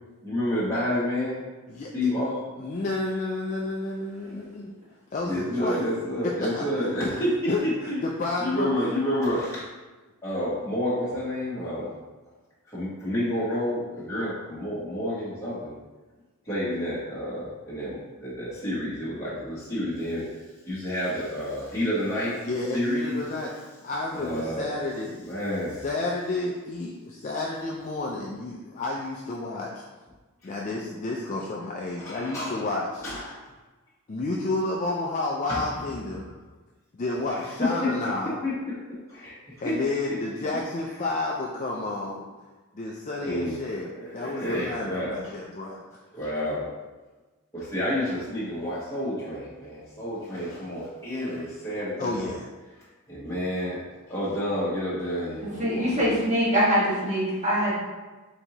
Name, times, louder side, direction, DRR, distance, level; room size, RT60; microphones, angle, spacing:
voice 1, 0.2-1.4 1.9-2.8 4.2-4.4 5.2-8.0 8.4-9.6 10.2-12.0 12.7-15.7 16.4-22.5 22.7-23.2 24.1-24.7 25.2-25.8 30.4-30.5 32.0-32.6 33.0-33.4 35.5-35.8 36.1-36.3 37.3-39.8 43.2-43.6 43.8-45.5 46.1-46.7 47.5-52.3 52.8-56.1, left 1 dB, 15° left, -11 dB, 1.1 m, -30 dB
voice 2, 2.6-4.7 5.1-5.8 6.4-6.6 7.5-7.6 8.0-8.7 22.4-25.2 25.8-29.8 30.4-33.0 34.1-36.3 36.9-38.4 39.6-42.3 42.7-45.8 52.0-52.5, left 2 dB, 35° left, -3 dB, 0.4 m, -30 dB
voice 3, 55.6-57.7, equal, 30° right, -8 dB, 1.5 m, -23 dB
4.4 x 3.8 x 2.9 m, 1.2 s
head